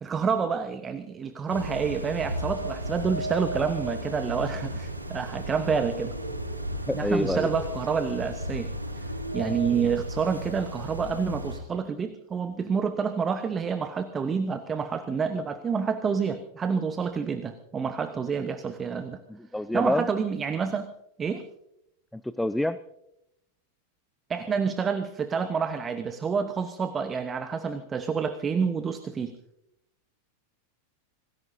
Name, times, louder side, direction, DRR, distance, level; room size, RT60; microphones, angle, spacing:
voice 1, 0.0-6.1 6.9-8.7 9.0-9.1 9.3-19.2 19.7-20.9 21.2-21.4 24.3-29.3, right 6 dB, 20° right, 10 dB, 1.1 m, -28 dB
sound 1, 1.5-11.6, equal, 85° right, 3.1 m, -34 dB
voice 2, 6.9-7.5 18.4-18.5 19.3-20.1 22.1-22.8, left 1 dB, 5° left, 15 dB, 0.5 m, -27 dB
27.0 x 19.0 x 2.8 m, 0.82 s
figure-of-eight pair, 90°, 0 cm